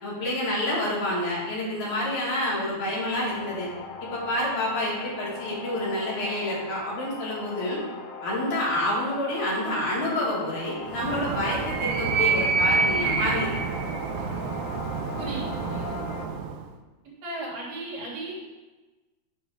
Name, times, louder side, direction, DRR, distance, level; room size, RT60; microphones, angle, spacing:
voice 1, 0.0-3.7 4.0-7.8 8.2-13.5, left 1 dB, 90° left, -6 dB, 3.5 m, -28 dB
sound 1, 3.0-16.3, left 5 dB, 70° left, 1.9 m, -39 dB
Animal, 10.8-16.7, right 5 dB, 85° right, 1.3 m, -27 dB
voice 2, 15.2-16.2 17.2-18.3, right 2 dB, 65° right, -5 dB, 3.0 m, -36 dB
8.5 x 3.4 x 6.4 m, 1.2 s
omnidirectional pair, 3.3 m